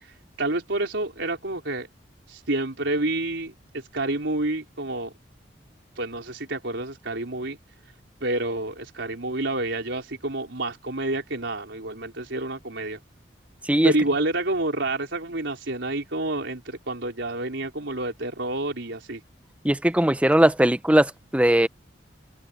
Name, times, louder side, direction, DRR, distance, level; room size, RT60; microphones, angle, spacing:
voice 1, 0.0-1.9 2.3-5.1 6.0-7.6 8.2-13.0 13.8-19.2, right 2 dB, 85° right, 4.1 m, -29 dB
voice 2, 19.6-21.7, right 1 dB, 5° right, 0.7 m, -19 dB
head